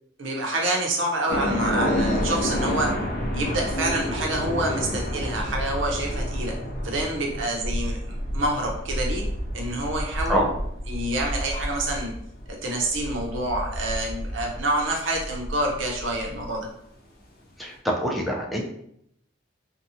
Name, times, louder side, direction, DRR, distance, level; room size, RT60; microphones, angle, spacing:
voice 1, 0.2-3.0 3.3-6.5 6.8-9.2 9.5-10.5 10.9-12.1 12.5-16.7, right 1 dB, 80° right, 0 dB, 0.7 m, -27 dB
sound 1, 1.3-16.4, equal, 50° left, 0.6 m, -29 dB
voice 2, 17.6-18.6, equal, ahead, -2 dB, 0.4 m, -25 dB
2.8 x 2.2 x 2.7 m, 0.73 s
head